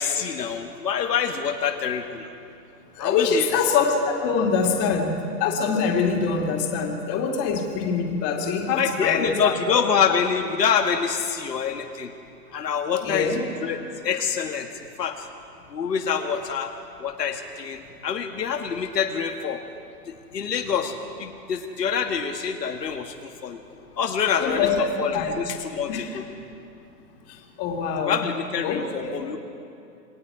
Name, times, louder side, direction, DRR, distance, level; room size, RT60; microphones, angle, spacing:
voice 1, 0.0-2.3 3.0-3.5 8.7-12.1 12.5-13.4 13.6-13.8 14.0-14.7 15.0-15.3 15.7-16.7 17.0-19.6 20.1-23.6 24.0-26.3 28.0-29.4, left 7 dB, 70° left, 4 dB, 1.7 m, -26 dB
voice 2, 3.0-9.8 13.0-13.4 24.4-25.4 25.9-26.1 27.3-28.3 28.6-29.3, left 5 dB, 30° left, 2 dB, 2.6 m, -24 dB
28.0 x 20.0 x 4.9 m, 2.6 s
hypercardioid pair, 130°, 50 cm